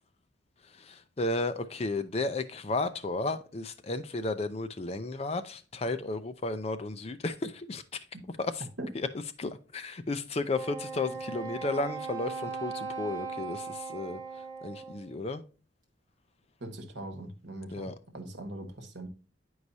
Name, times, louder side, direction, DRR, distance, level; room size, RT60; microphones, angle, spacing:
voice 1, 0.8-7.8 8.4-8.7 8.9-9.1 9.4-14.2 14.6-15.4 17.7-18.0, left 2 dB, 30° left, 0.4 m, -33 dB
Wind instrument woodwind instrument, 10.5-15.1, right 5 dB, 20° right, 1.3 m, -38 dB
voice 2, 16.6-17.9 18.1-19.1, right 1 dB, 65° right, 1.2 m, -40 dB
9.6 x 4.7 x 2.6 m
head